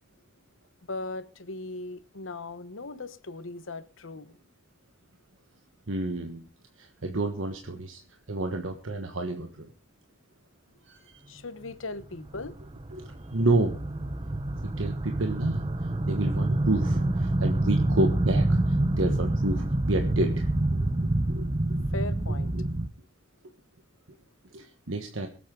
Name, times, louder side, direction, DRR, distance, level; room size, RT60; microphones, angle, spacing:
voice 1, 0.9-4.4 11.3-12.6 21.9-22.5, left 2 dB, 80° left, 1.1 m, -38 dB
voice 2, 5.9-6.4 6.8-8.0 8.3-9.7 10.8-11.2 12.9-13.7 14.8-21.8 22.5-22.6 24.5-25.3, right 2 dB, 80° right, 1.4 m, -30 dB
sound 1, 12.0-22.9, right 1 dB, 25° right, 0.9 m, -27 dB
23.5 x 8.4 x 3.8 m
head